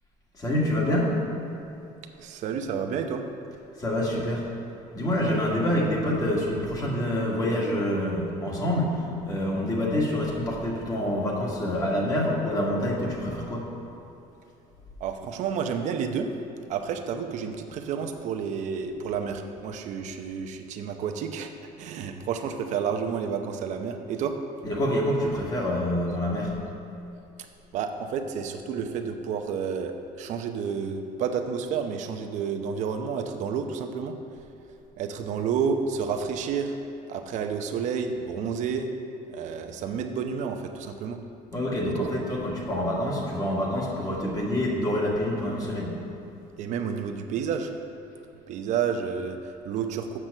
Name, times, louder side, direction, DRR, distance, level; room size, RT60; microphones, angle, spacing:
voice 1, 0.3-1.1 3.8-4.4 4.9-13.7 24.6-26.5 41.5-46.0, left 1 dB, 25° left, -3 dB, 1.7 m, -26 dB
voice 2, 2.2-3.2 15.0-16.3 16.7-21.5 21.8-24.3 27.7-34.2 35.0-36.8 37.1-38.9 39.3-41.2 41.8-42.1 46.6-47.7 48.5-50.2, right 6 dB, 60° right, 6 dB, 0.8 m, -30 dB
7.5 x 6.0 x 6.6 m, 2.8 s
cardioid pair, 140°, 14 cm